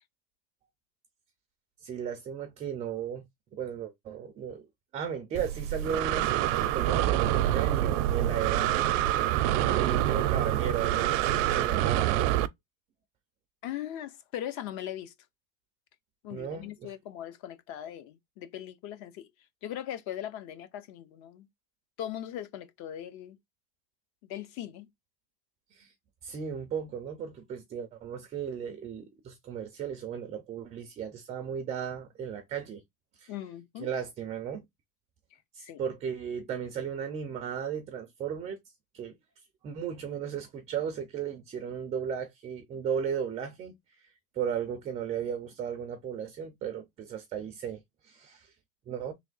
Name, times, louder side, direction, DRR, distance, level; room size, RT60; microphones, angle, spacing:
voice 1, 1.8-3.3 3.5-4.7 4.9-8.9 9.6-12.4 16.3-16.9 25.7-25.9 26.2-32.8 33.2-33.3 33.8-34.6 35.5-38.6 38.9-39.1 39.6-48.5 48.9-49.1, right 7 dB, 20° right, 0.4 m, -35 dB
Breathing, 5.4-12.5, right 13 dB, 70° right, 0.5 m, -26 dB
voice 2, 13.6-15.1 16.2-19.3 19.6-21.5 22.0-23.4 24.3-24.9 33.3-33.9 35.6-35.8, left 11 dB, 45° left, 0.6 m, -39 dB
3.3 x 2.7 x 3.8 m
cardioid pair, 165°, 38 cm